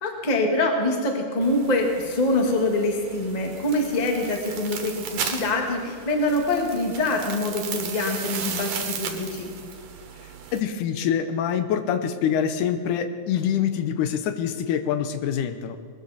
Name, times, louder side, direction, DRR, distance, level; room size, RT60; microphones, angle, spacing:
voice 1, 0.0-9.5, left 2 dB, 20° left, 2 dB, 1.0 m, -24 dB
sound 1, 1.4-10.6, right 7 dB, 85° right, 2.9 m, -35 dB
voice 2, 10.5-15.8, left 8 dB, 80° left, 9 dB, 2.2 m, -25 dB
20.5 x 13.5 x 4.1 m, 2.1 s
omnidirectional pair, 3.7 m